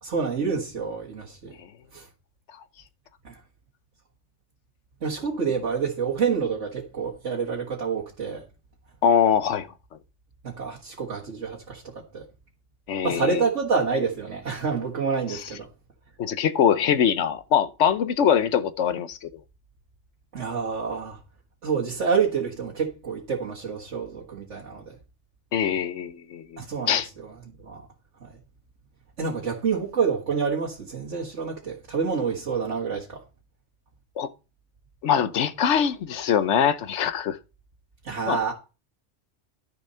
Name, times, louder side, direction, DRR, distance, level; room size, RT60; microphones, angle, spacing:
voice 1, 0.0-1.6 1.9-2.1 3.2-3.4 5.0-8.4 10.4-12.3 13.0-15.7 20.3-21.2 21.6-25.0 26.6-27.9 28.2-28.4 29.2-33.2 38.0-38.5, right 5 dB, 80° right, 2.0 m, -28 dB
voice 2, 9.0-9.7 12.9-13.4 15.3-15.4 16.2-19.3 25.5-26.6 26.9-27.1 34.2-34.3 35.0-37.4 38.3-38.4, left 8 dB, 80° left, 1.1 m, -23 dB
11.5 x 6.9 x 5.6 m
omnidirectional pair, 1.2 m